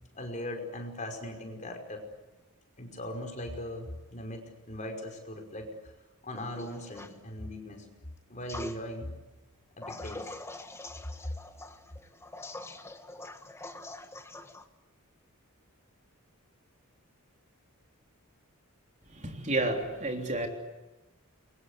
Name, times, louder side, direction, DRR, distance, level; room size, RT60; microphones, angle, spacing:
voice 1, 0.1-2.0 2.8-5.9 6.2-7.9 8.3-9.2 9.8-10.3, left 1 dB, 35° left, 3 dB, 5.4 m, -39 dB
sound 1, 6.3-7.1 8.5-8.8 9.8-14.6, left 1 dB, 10° left, 1.5 m, -43 dB
voice 2, 19.1-20.5, right 2 dB, 35° right, 3 dB, 3.5 m, -31 dB
29.0 x 23.5 x 8.2 m, 1.1 s
head